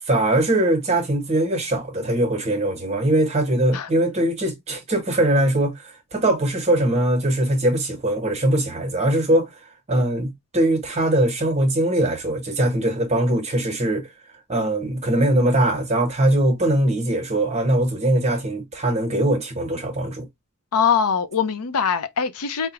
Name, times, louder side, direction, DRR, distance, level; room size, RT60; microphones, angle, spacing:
voice 1, 0.1-9.5 9.9-14.1 14.5-20.3, right 1 dB, 30° right, 0.9 m, -21 dB
voice 2, 20.7-22.7, left 7 dB, 90° left, 0.6 m, -22 dB
4.8 x 2.1 x 2.9 m
head